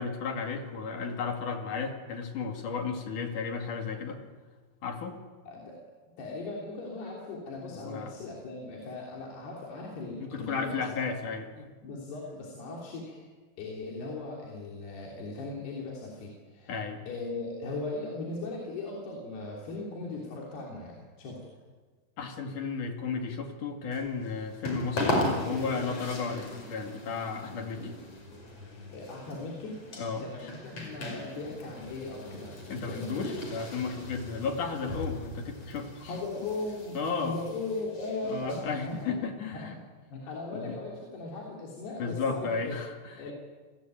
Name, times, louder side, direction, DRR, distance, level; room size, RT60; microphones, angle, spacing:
voice 1, 0.0-4.2 4.8-5.2 7.7-8.1 10.2-11.7 16.7-17.0 22.2-27.9 30.0-30.5 32.7-36.1 36.9-37.4 38.2-39.7 40.5-40.8 42.0-43.2, left 5 dB, 50° left, 5 dB, 3.5 m, -34 dB
voice 2, 5.5-5.8 6.2-10.8 11.8-13.3 13.6-16.8 17.1-21.5 28.9-29.8 30.2-33.2 34.3-34.5 36.1-39.2 39.5-39.8 40.1-42.8 43.2-43.3, left 3 dB, 70° left, -2 dB, 5.4 m, -38 dB
sound 1, 23.9-39.1, left 1 dB, 35° left, 5.9 m, -38 dB
29.5 x 20.5 x 9.1 m, 1.4 s
omnidirectional pair, 4.9 m